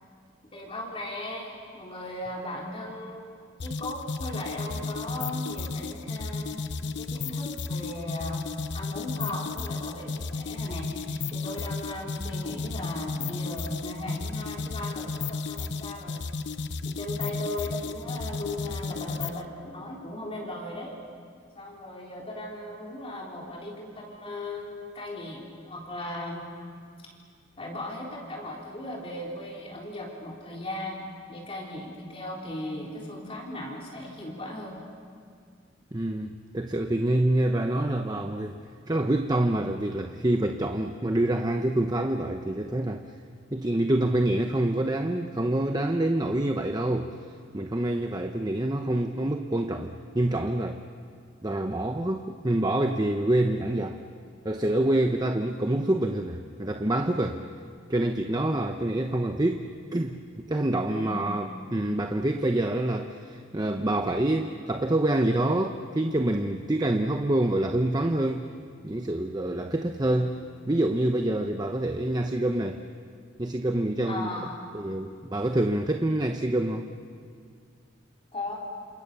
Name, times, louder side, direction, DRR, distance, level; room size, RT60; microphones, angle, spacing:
voice 1, 0.5-3.3 3.6-6.6 7.0-8.4 8.7-16.2 16.8-20.9 21.6-26.5 27.6-34.8 60.9-61.3 74.1-74.6 78.3-78.5, left 1 dB, 30° left, -3 dB, 4.0 m, -37 dB
sound 1, 3.6-19.4, left 4 dB, 65° left, 0.9 m, -33 dB
voice 2, 35.9-38.6 38.9-43.0 43.5-47.1 47.5-50.8 51.4-54.0 54.4-57.4 57.9-59.7 59.9-68.5 68.8-70.4 70.7-72.8 73.4-74.3 74.7-76.9, right 1 dB, 20° right, 5 dB, 0.9 m, -26 dB
28.5 x 28.0 x 6.9 m, 2.2 s
head